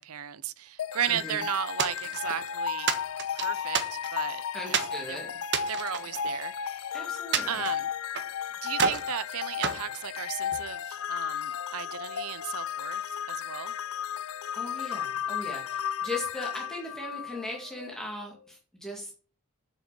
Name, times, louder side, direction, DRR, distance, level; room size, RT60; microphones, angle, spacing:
voice 1, 0.0-2.9 3.3-5.2 5.7-6.9 7.5-7.9 8.6-13.8, right 9 dB, 80° right, 0.6 m, -35 dB
sound 1, 0.8-17.9, left 8 dB, 70° left, 0.4 m, -34 dB
voice 2, 1.1-1.4 4.5-5.3 6.9-7.6 14.5-19.1, left 1 dB, 5° left, 2.0 m, -38 dB
sound 2, 1.8-2.4 2.9-4.3 4.7-5.0 5.4-6.8 7.3-8.3 8.7-9.1 9.6-10.7, right 6 dB, 55° right, 1.3 m, -30 dB
7.4 x 6.6 x 6.7 m
head